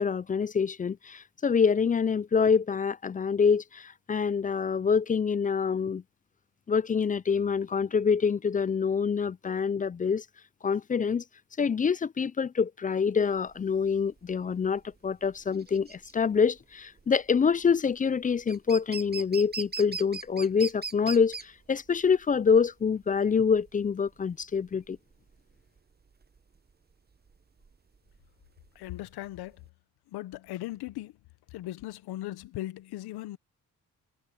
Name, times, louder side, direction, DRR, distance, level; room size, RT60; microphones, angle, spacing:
voice 1, 0.0-6.0 6.7-10.2 10.6-11.2 11.6-25.0, left 6 dB, 25° left, 0.3 m, -26 dB
sound 1, 13.3-29.7, right 4 dB, 25° right, 0.9 m, -42 dB
voice 2, 28.7-29.7 30.1-31.2 31.5-33.4, left 16 dB, 85° left, 1.0 m, -38 dB
supercardioid pair, 55°, 38 cm